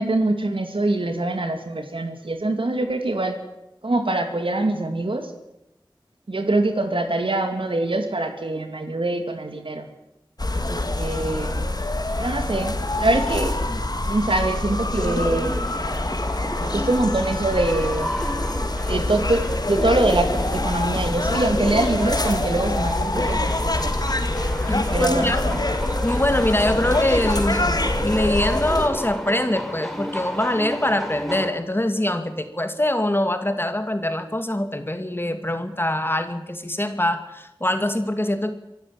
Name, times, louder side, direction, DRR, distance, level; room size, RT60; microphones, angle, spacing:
voice 1, 0.0-3.4 3.8-5.3 6.3-9.9 10.7-11.7 12.2-13.6 14.1-15.6 16.6-18.1 18.9-23.9 24.9-25.7, right 2 dB, 85° right, 6 dB, 2.5 m, -24 dB
sound 1, 10.4-28.9, left 2 dB, 50° left, 2.4 m, -25 dB
sound 2, 14.9-31.5, equal, ahead, 3.9 m, -33 dB
voice 2, 24.6-25.4 26.0-38.5, left 1 dB, 25° left, 8 dB, 2.2 m, -23 dB
24.5 x 13.0 x 8.9 m, 0.88 s
wide cardioid pair, 50°, 9 cm